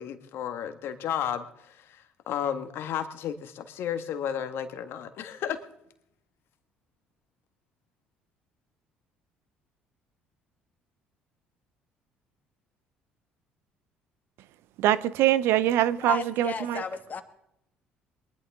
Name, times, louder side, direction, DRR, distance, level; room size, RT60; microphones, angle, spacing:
voice 1, 0.0-5.6, left 9 dB, 65° left, 1.7 m, -33 dB
voice 2, 14.8-16.8, right 13 dB, 70° right, 0.7 m, -23 dB
voice 3, 16.0-17.2, left 5 dB, 40° left, 2.1 m, -33 dB
22.5 x 11.5 x 3.6 m
hypercardioid pair, 65°, 4 cm